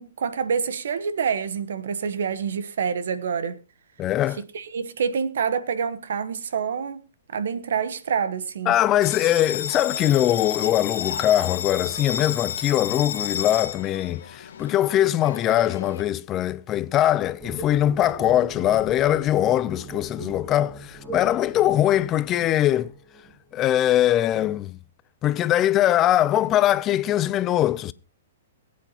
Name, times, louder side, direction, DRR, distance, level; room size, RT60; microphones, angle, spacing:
voice 1, 0.0-3.6 4.5-7.0 7.3-8.7, right 6 dB, 75° right, 1.1 m, -27 dB
voice 2, 4.0-4.4 8.7-22.9 23.5-24.8 25.2-27.9, left 12 dB, 25° left, 0.5 m, -22 dB
Bell, 9.0-16.0, left 8 dB, 75° left, 1.6 m, -32 dB
sound 1, 17.4-23.6, right 2 dB, 20° right, 6.0 m, -39 dB
21.5 x 8.4 x 2.9 m
hypercardioid pair, 145°, 0 cm